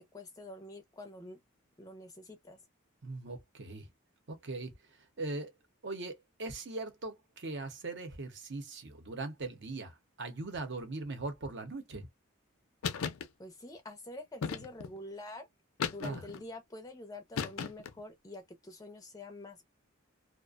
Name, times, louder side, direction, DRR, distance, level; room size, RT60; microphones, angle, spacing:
voice 1, 0.1-1.4 1.8-2.6 13.4-15.5 15.9-19.7, left 2 dB, 15° left, 0.4 m, -47 dB
voice 2, 3.0-3.9 4.3-4.7 5.2-5.5 5.8-12.1 16.0-16.2, right 2 dB, 60° right, 0.8 m, -40 dB
sound 1, 12.8-13.3 14.4-15.0 15.8-16.4 17.3-18.0, left 6 dB, 80° left, 0.5 m, -36 dB
2.4 x 2.1 x 2.4 m
head